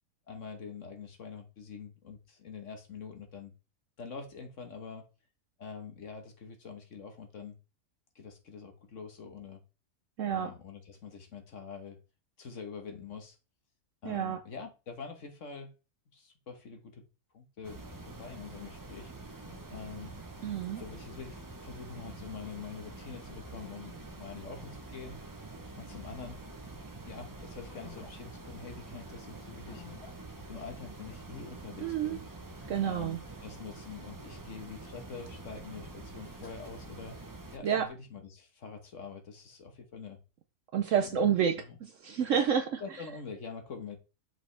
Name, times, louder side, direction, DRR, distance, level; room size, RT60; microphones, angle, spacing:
voice 1, 0.3-3.5 4.0-5.1 5.6-7.6 8.1-9.6 10.3-12.0 12.4-13.4 14.0-15.7 16.1-17.0 17.3-19.1 19.7-20.1 20.8-25.2 25.8-26.4 27.0-29.8 30.5-32.2 32.8-33.2 33.4-37.2 37.5-40.2 41.0-41.2 41.6-41.8 42.8-44.0, left 5 dB, 50° left, 1.4 m, -45 dB
voice 2, 10.2-10.5 14.0-14.4 20.4-20.8 31.8-32.2 32.7-33.2 37.6-37.9 40.7-42.8, right 8 dB, 65° right, 0.8 m, -29 dB
sound 1, 17.6-37.6, right 2 dB, 25° right, 0.4 m, -46 dB
sound 2, 19.4-19.6 20.5-20.8 21.7-22.2 23.7-24.2 25.5-25.6 26.0-26.3 26.9-27.0 27.7-28.1 29.7-30.1 30.6-30.7 32.6-33.0 34.7-35.4 36.2-37.0 37.5-37.9, left 5 dB, 75° left, 3.4 m, -53 dB
6.2 x 4.9 x 3.3 m
omnidirectional pair, 1.7 m